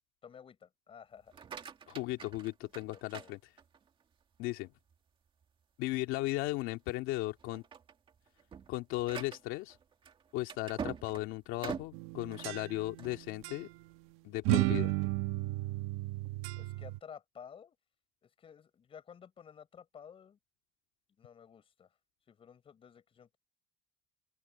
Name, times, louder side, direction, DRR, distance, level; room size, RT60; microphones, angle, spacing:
voice 1, 0.2-1.3 2.9-3.3 16.6-17.7 18.2-20.4 21.2-22.0 22.3-23.4, left 7 dB, 25° left, 6.2 m, -53 dB
sound 1, 1.2-4.0 4.5-5.0 5.4-5.5 5.9-6.1 6.8-7.0 7.4-13.3, right 6 dB, 25° right, 2.0 m, -46 dB
voice 2, 1.9-3.4 4.4-4.7 5.8-7.6 8.7-9.8 10.3-13.7 14.2-14.9, left 18 dB, 70° left, 2.3 m, -36 dB
sound 2, 11.9-13.1 13.4-13.6 14.4-17.0, right 18 dB, 80° right, 1.3 m, -33 dB
open air
cardioid pair, 175°, 21 cm